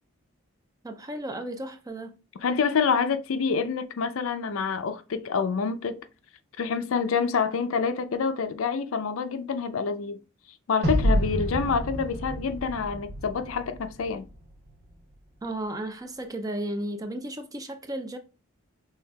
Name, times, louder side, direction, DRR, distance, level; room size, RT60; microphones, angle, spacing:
voice 1, 0.8-2.2 15.4-18.2, right 1 dB, 15° right, 0.4 m, -34 dB
voice 2, 2.4-6.0 6.6-10.2 10.7-14.3, left 5 dB, 70° left, 0.4 m, -27 dB
sound 1, 10.8-14.1, equal, 50° right, 1.2 m, -28 dB
5.5 x 3.3 x 2.2 m
head